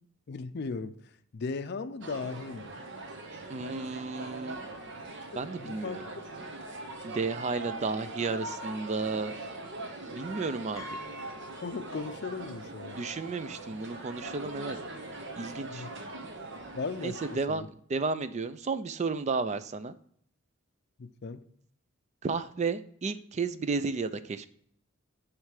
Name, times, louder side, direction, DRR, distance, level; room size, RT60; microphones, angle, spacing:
voice 1, 0.3-1.0 1.3-2.8 5.3-6.1 11.6-13.0 15.7-15.9 16.7-17.7 21.0-21.4, left 4 dB, 50° left, 0.5 m, -37 dB
sound 1, 2.0-17.4, right 2 dB, 60° right, 1.0 m, -41 dB
voice 2, 3.5-4.6 5.4-6.0 7.0-9.3 10.1-10.9 13.0-14.8 15.4-15.8 17.0-17.6 17.9-19.9 22.2-24.5, right 4 dB, 35° right, 0.4 m, -32 dB
Piano, 10.8-12.6 12.9-13.0 14.2-14.3 14.5-14.8, left 2 dB, 15° left, 0.9 m, -46 dB
9.2 x 3.2 x 4.8 m
head